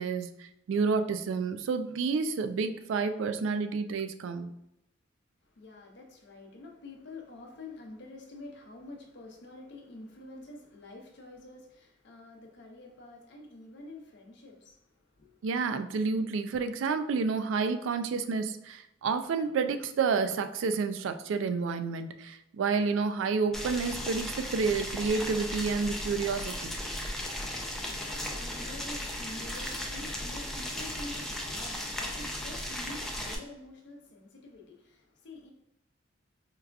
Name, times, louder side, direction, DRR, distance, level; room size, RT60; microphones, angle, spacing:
voice 1, 0.0-4.5 15.4-26.8, right 5 dB, 80° right, 0.3 m, -30 dB
voice 2, 5.4-15.5 27.7-35.5, left 2 dB, 65° left, 0.7 m, -47 dB
Boiling, 23.5-33.4, left 1 dB, ahead, 0.4 m, -36 dB
4.7 x 2.3 x 2.3 m
head